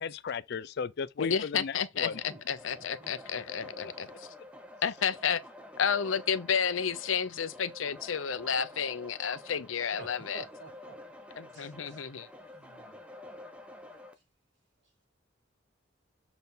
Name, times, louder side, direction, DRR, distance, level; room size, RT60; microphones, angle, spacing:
voice 1, 0.0-2.1, left 6 dB, 55° left, 0.4 m, -36 dB
voice 2, 1.2-4.1 4.8-5.4 5.8-10.4 11.3-12.3, left 7 dB, 85° left, 0.7 m, -31 dB
sound 1, 2.1-14.1, left 1 dB, 5° right, 0.9 m, -49 dB
voice 3, 2.1-2.4 3.0-3.1 9.9-10.9 11.5-12.0 12.5-13.0, right 2 dB, 60° right, 4.1 m, -49 dB
6.9 x 4.2 x 4.0 m
head